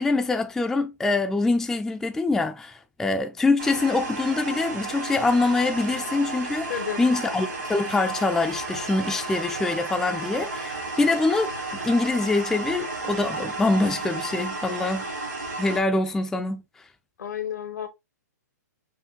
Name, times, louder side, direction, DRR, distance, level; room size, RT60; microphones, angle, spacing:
voice 1, 0.0-6.7 7.0-11.5 11.8-15.0 15.6-16.6, left 3 dB, 5° left, 0.3 m, -24 dB
sound 1, 3.6-15.8, right 3 dB, 80° right, 2.2 m, -33 dB
voice 2, 6.7-7.1 17.2-17.9, left 9 dB, 75° left, 0.9 m, -31 dB
5.6 x 2.3 x 2.7 m
hypercardioid pair, 130°, 10 cm